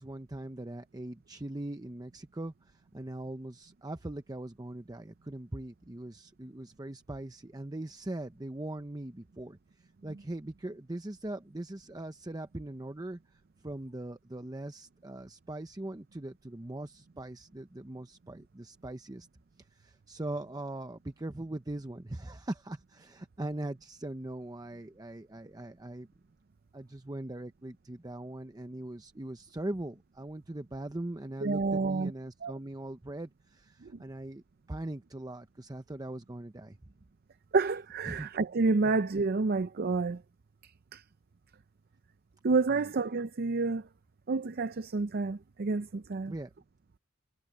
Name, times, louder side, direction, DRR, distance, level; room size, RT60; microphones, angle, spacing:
voice 1, 0.0-9.6 10.0-19.3 19.7-26.1 26.7-34.4 34.7-36.8 38.1-38.3 38.8-38.9 42.7-42.9 46.3-46.5, right 1 dB, 20° right, 0.7 m, -41 dB
voice 2, 31.4-32.1 32.4-32.5 33.8-33.9 37.5-40.2 40.9-41.0 42.4-43.9 44.3-46.3, right 3 dB, 50° right, 0.5 m, -29 dB
head